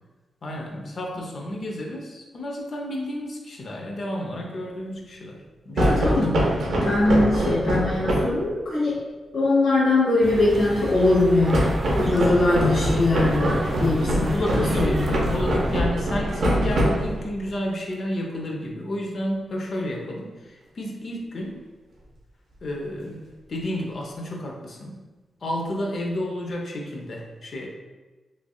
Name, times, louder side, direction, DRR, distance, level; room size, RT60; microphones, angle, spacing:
voice 1, 0.4-6.4 7.0-7.1 14.3-15.1 15.3-21.6 22.6-25.0 25.4-27.7, left 1 dB, 55° left, 0 dB, 0.6 m, -31 dB
voice 2, 5.8-6.5 6.8-9.0 9.3-11.7 12.0-15.4, left 2 dB, 75° left, -8 dB, 1.1 m, -22 dB
sound 1, 5.8-8.4 11.5-17.4, right 1 dB, 80° right, 0.6 m, -23 dB
sound 2, 10.2-15.8, right 1 dB, 30° right, 0.4 m, -33 dB
3.2 x 2.5 x 2.3 m, 1.2 s
cardioid pair, 75°, 0 cm